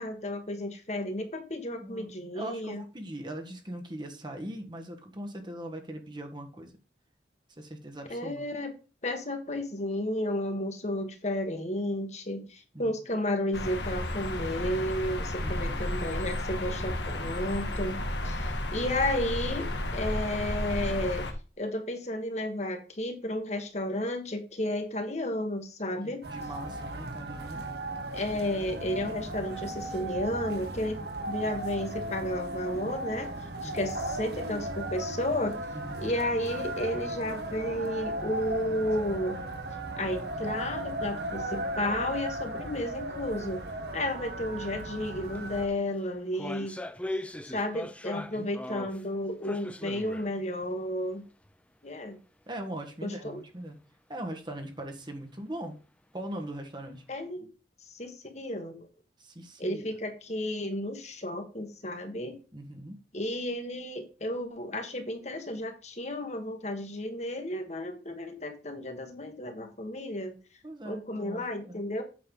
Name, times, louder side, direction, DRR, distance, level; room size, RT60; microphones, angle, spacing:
voice 1, 0.0-2.8 8.1-8.7 9.0-21.3 21.6-26.2 28.1-31.0 31.3-33.3 33.6-35.5 36.0-39.4 40.0-43.6 43.9-46.8 47.5-51.2 51.8-52.2 53.0-53.4 57.1-57.5 57.9-58.9 59.6-62.4 63.1-70.3 70.8-72.0, left 1 dB, 40° left, 1.7 m, -32 dB
voice 2, 1.6-6.7 7.6-8.5 12.7-12.9 15.4-15.8 26.0-27.6 33.6-33.9 35.7-36.1 48.1-48.5 52.5-53.8 54.1-55.8 56.1-57.0 59.2-59.8 62.5-63.0 70.6-71.8, right 1 dB, 25° right, 1.4 m, -40 dB
sound 1, 13.5-21.3, left 1 dB, 80° left, 1.8 m, -32 dB
sound 2, 26.2-45.7, right 1 dB, 65° right, 2.0 m, -36 dB
sound 3, 45.3-45.4 45.7-49.1 49.4-50.4 50.6-50.7 51.5-51.6, left 1 dB, 5° left, 0.5 m, -39 dB
8.6 x 6.7 x 3.8 m
head